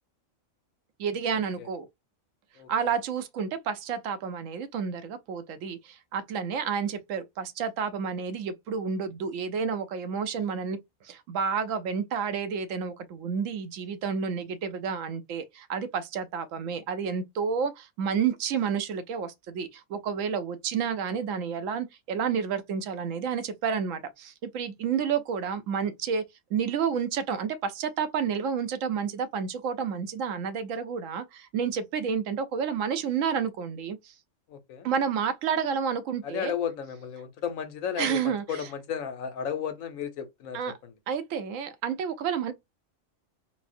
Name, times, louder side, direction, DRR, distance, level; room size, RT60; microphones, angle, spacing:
voice 1, 1.0-1.9 2.7-10.8 11.0-26.2 26.5-34.1 34.8-36.5 38.0-38.7 40.5-40.7 41.1-42.5, right 6 dB, 75° right, 1.0 m, -30 dB
voice 2, 34.5-34.9 36.2-40.9, left 8 dB, 80° left, 1.2 m, -34 dB
4.1 x 2.0 x 2.5 m
omnidirectional pair, 1.4 m